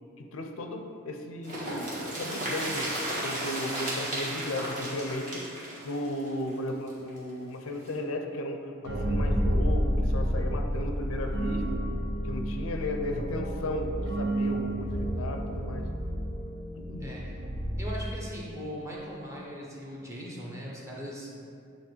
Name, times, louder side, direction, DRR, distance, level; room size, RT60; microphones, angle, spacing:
voice 1, 0.2-2.9 3.2-5.5 5.8-11.8 12.2-15.9 16.8-17.1, left 1 dB, 75° left, 4 dB, 0.5 m, -35 dB
sound 1, 1.4-7.2 7.5-7.6 7.9-8.0, right 1 dB, 35° right, 1.5 m, -34 dB
sound 2, 8.8-18.5, equal, 55° right, 0.7 m, -30 dB
voice 2, 17.0-17.4 17.8-21.3, equal, 15° right, -4 dB, 0.9 m, -39 dB
8.1 x 3.1 x 4.4 m, 2.4 s
head